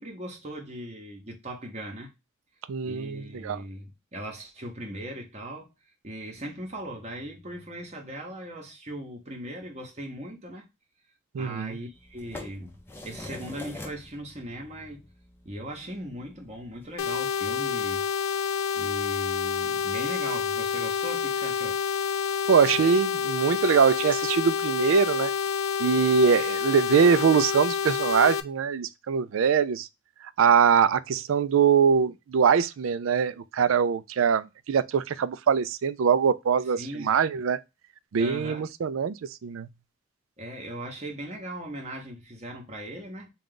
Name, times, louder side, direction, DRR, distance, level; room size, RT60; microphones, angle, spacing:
voice 1, 0.0-2.1 2.8-5.7 6.0-10.7 11.3-15.1 15.4-18.0 18.7-21.8 36.8-37.1 38.2-38.7 40.4-43.3, right 1 dB, 30° right, 0.8 m, -39 dB
voice 2, 2.7-3.6 11.3-11.7 22.5-25.3 25.8-29.9 30.4-37.6 38.1-39.1 39.4-39.7, right 6 dB, 85° right, 0.4 m, -23 dB
sound 1, 11.9-17.1, left 2 dB, 10° left, 0.5 m, -45 dB
sound 2, 17.0-28.4, left 6 dB, 85° left, 0.4 m, -28 dB
3.7 x 2.3 x 3.7 m
head